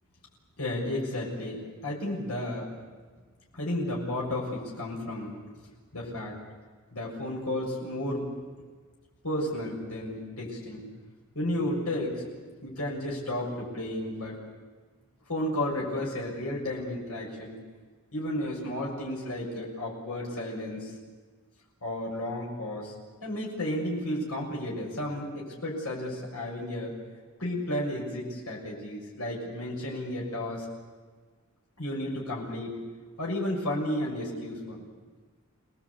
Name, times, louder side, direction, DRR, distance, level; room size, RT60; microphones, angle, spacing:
voice 1, 0.6-2.7 3.5-5.3 5.9-6.4 6.9-8.3 9.2-10.8 11.3-12.3 12.6-14.4 15.3-17.6 18.1-20.9 21.8-22.9 23.2-26.9 27.4-30.7 31.8-32.7 33.2-34.9, left 1 dB, 85° left, -3 dB, 6.8 m, -32 dB
28.0 x 20.0 x 8.5 m, 1.5 s
head